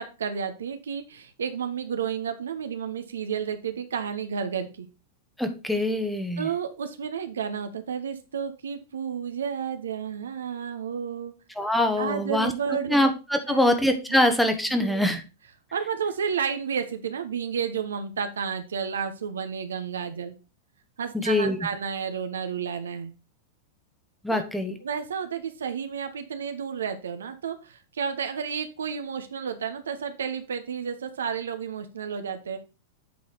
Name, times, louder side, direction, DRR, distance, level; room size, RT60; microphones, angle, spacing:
voice 1, 0.0-4.9 6.4-11.3 12.0-13.0 13.5-13.6 14.1-14.2 14.7-15.0 15.7-20.3 21.0-23.1 24.3-24.4 24.8-32.6, right 7 dB, 80° right, 8 dB, 1.0 m, -31 dB
voice 2, 5.4-6.5 11.6-12.5 12.9-15.2 21.1-21.6 24.2-24.8, left 1 dB, ahead, 6 dB, 1.1 m, -23 dB
8.3 x 4.2 x 4.8 m, 0.31 s
hypercardioid pair, 100°, 0 cm